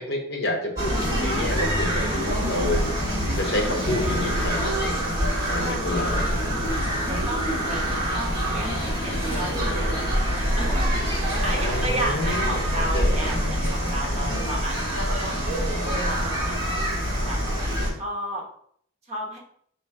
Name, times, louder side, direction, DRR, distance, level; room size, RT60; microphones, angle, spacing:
voice 1, 0.0-4.9 5.5-6.4 11.5-12.7 12.9-13.2 13.4-13.5 14.0-14.4, left 1 dB, 55° left, 0 dB, 1.0 m, -30 dB
sound 1, 0.8-17.9, equal, 20° right, 1.5 m, -25 dB
sound 2, 0.8-7.0 7.3-7.5 8.0-8.4 8.9-9.0 10.1-10.2, right 1 dB, 80° right, 0.7 m, -36 dB
voice 2, 5.4-6.3 6.8-7.8 8.1-15.3 15.8-17.4 17.9-18.4 19.1-19.4, right 1 dB, 35° right, -1 dB, 1.0 m, -34 dB
Thunder, 5.7-16.4, left 2 dB, 35° left, 0.4 m, -39 dB
3.2 x 3.1 x 4.6 m, 0.63 s
head